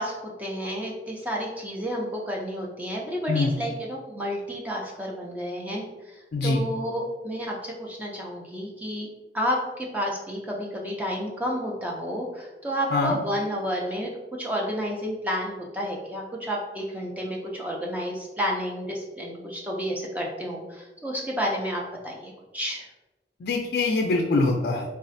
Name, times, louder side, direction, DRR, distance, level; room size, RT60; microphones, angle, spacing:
voice 1, 0.0-6.2 6.4-9.1 9.3-22.9, equal, 10° right, -2 dB, 0.4 m, -31 dB
voice 2, 23.4-24.8, left 3 dB, 60° left, 1 dB, 0.3 m, -23 dB
4.0 x 2.4 x 2.5 m, 1.1 s
head